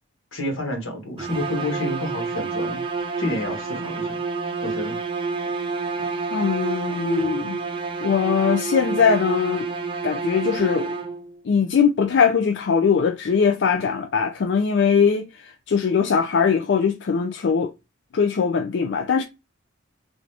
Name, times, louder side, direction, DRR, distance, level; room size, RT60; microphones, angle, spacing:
voice 1, 0.3-2.8 3.2-4.2 4.6-5.0, left 1 dB, 85° left, 1.3 m, -29 dB
sound 1, 1.2-11.4, right 4 dB, 25° right, 0.4 m, -28 dB
voice 2, 6.3-7.6 8.0-9.7 10.0-10.9 11.5-17.7 18.1-19.2, left 6 dB, 60° left, 0.4 m, -21 dB
3.8 x 2.4 x 3.2 m
head